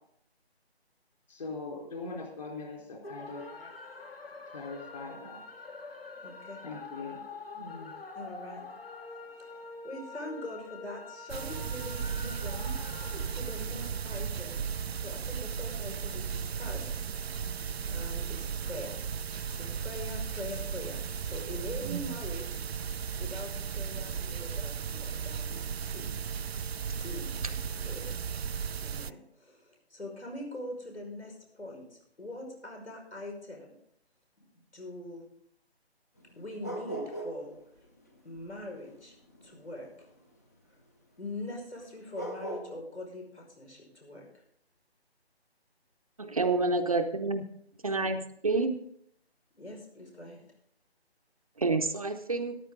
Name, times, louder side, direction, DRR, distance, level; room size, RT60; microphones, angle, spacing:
voice 1, 1.3-3.4 4.5-5.4 6.6-7.9, left 3 dB, 40° left, -1 dB, 4.3 m, -41 dB
sound 1, 3.0-17.5, left 4 dB, 60° left, 1.9 m, -46 dB
voice 2, 6.2-6.6 8.1-8.6 9.4-12.7 13.3-14.6 14.9-16.9 17.2-17.4 17.9-19.0 19.5-22.6 23.2-25.5 25.8-26.1 26.9-27.6 27.8-28.1 28.8-33.7 34.5-35.3 36.4-37.9 38.2-39.1 39.4-39.9 41.2-44.4 49.5-50.4, left 1 dB, 85° left, 1 dB, 5.5 m, -43 dB
sound 2, 11.3-29.1, right 7 dB, 70° right, 0.5 m, -35 dB
sound 3, 36.2-37.5 37.8-40.2 41.8-41.9 42.1-42.6, right 1 dB, 15° left, 0.7 m, -39 dB
voice 3, 46.2-47.4 47.8-48.2 48.4-48.7 51.6-52.6, right 3 dB, 35° right, 6 dB, 0.8 m, -28 dB
13.5 x 11.0 x 3.8 m, 0.71 s
figure-of-eight pair, 160°, 33 cm